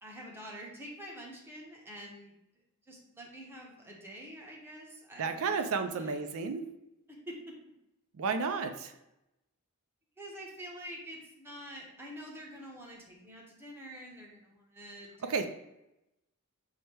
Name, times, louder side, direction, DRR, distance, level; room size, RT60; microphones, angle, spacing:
voice 1, 0.0-2.3 2.9-6.3 7.1-7.5 10.2-15.5, equal, 10° right, -2 dB, 0.8 m, -47 dB
voice 2, 5.2-6.6 8.2-8.9 15.2-15.5, right 5 dB, 65° right, 8 dB, 0.4 m, -32 dB
4.9 x 2.1 x 4.4 m, 0.89 s
head